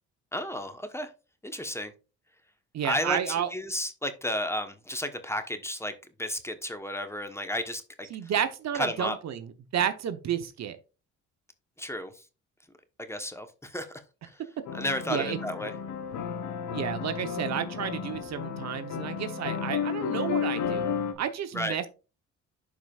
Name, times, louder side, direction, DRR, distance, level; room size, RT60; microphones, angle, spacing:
voice 1, 0.3-1.1 1.4-1.9 2.8-5.9 6.2-8.1 8.7-9.2 11.8-12.1 13.1-14.0 14.7-15.7 21.5-21.8, left 1 dB, 10° left, 1.1 m, -32 dB
voice 2, 2.7-3.5 8.1-10.8 15.1-15.4 16.7-20.9 21.2-21.9, right 9 dB, 60° right, 1.0 m, -31 dB
sound 1, 14.7-21.1, left 7 dB, 75° left, 1.2 m, -32 dB
11.5 x 4.8 x 2.4 m
cardioid pair, 90°, 30 cm